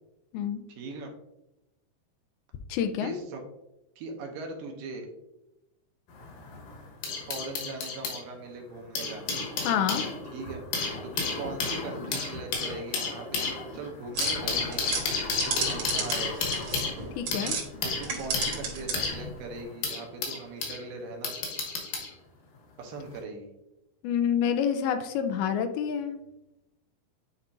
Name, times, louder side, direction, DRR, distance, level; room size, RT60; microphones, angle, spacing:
voice 1, 0.7-1.1 3.0-3.4 4.0-5.1 7.3-9.2 10.3-10.6 11.0-15.0 15.5-16.5 17.8-21.3 22.8-23.5, right 3 dB, 75° right, 2 dB, 2.4 m, -40 dB
voice 2, 2.7-3.1 9.6-10.1 17.2-17.6 24.0-26.2, left 8 dB, 85° left, 7 dB, 2.5 m, -27 dB
sound 1, 6.1-8.2 8.8-20.8 21.2-22.1 23.0-23.2, left 4 dB, 70° left, 2.8 m, -32 dB
sound 2, 14.1-17.7 18.0-19.2, right 5 dB, 55° right, 2.3 m, -33 dB
9.6 x 4.3 x 2.5 m, 0.90 s
omnidirectional pair, 4.4 m